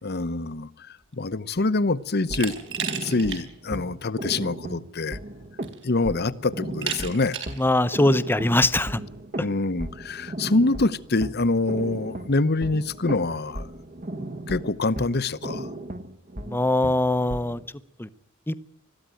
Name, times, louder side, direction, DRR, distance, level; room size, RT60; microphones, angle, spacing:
voice 1, 0.0-2.5 3.0-5.2 5.8-7.4 9.4-13.7 14.5-15.7, left 3 dB, 50° left, 0.9 m, -25 dB
sound 1, 2.2-17.7, right 1 dB, 40° right, 1.3 m, -36 dB
Glass, 2.3-3.4 3.8-3.9 5.1-5.2 5.6-6.0 6.8-7.6, right 8 dB, 65° right, 4.4 m, -33 dB
voice 2, 7.6-9.0 16.5-17.6 18.0-18.1 18.5-18.6, left 1 dB, 10° left, 0.8 m, -22 dB
21.0 x 14.0 x 9.1 m
head